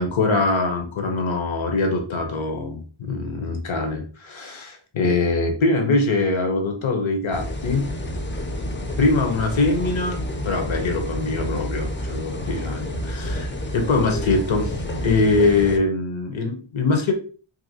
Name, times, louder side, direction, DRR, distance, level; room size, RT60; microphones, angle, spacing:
voice 1, 0.0-7.8 9.0-17.1, left 3 dB, 70° left, 4 dB, 0.7 m, -23 dB
sound 1, 7.3-15.8, left 1 dB, 25° left, 0.4 m, -29 dB
2.9 x 2.7 x 2.7 m, 0.39 s
wide cardioid pair, 70°, 49 cm